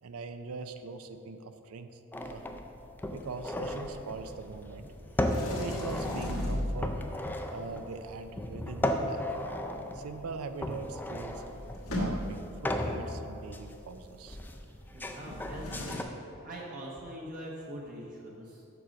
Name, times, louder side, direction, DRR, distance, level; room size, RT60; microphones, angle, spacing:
voice 1, 0.0-2.0 2.3-2.4 3.1-4.8 5.5-7.0 7.5-9.3 9.9-11.4 11.9-14.4, right 4 dB, 85° right, 9 dB, 0.5 m, -42 dB
sound 1, 2.1-16.0, left 1 dB, 10° left, 0.4 m, -36 dB
Sliding door, 5.2-7.2 10.7-10.8 11.0-12.6 15.2-16.0, left 1 dB, 90° left, 1.4 m, -36 dB
voice 2, 14.9-16.1 16.4-18.8, equal, 40° right, -3 dB, 0.9 m, -43 dB
6.8 x 6.2 x 5.0 m, 2.8 s
head